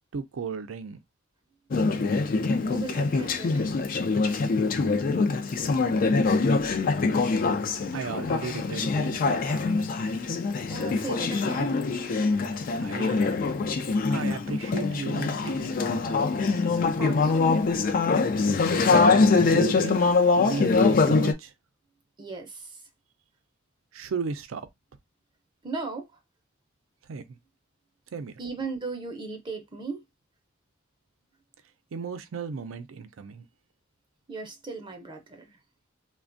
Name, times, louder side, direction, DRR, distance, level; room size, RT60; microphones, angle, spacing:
voice 1, 0.1-1.0 7.9-9.8 12.8-13.2 14.1-15.7 19.4-20.0 20.4-21.5 23.9-24.7 27.1-27.2 28.1-28.3 31.9-33.5, right 5 dB, 80° right, 0.4 m, -35 dB
Conversation / Chatter, 1.7-21.3, left 4 dB, 45° left, 0.4 m, -24 dB
voice 2, 2.7-3.7 7.8-7.9 10.7-11.8 16.9-17.5 22.2-22.8 25.6-26.1 28.4-30.0 34.3-35.6, right 4 dB, 25° right, 0.6 m, -37 dB
3.3 x 2.2 x 2.5 m
head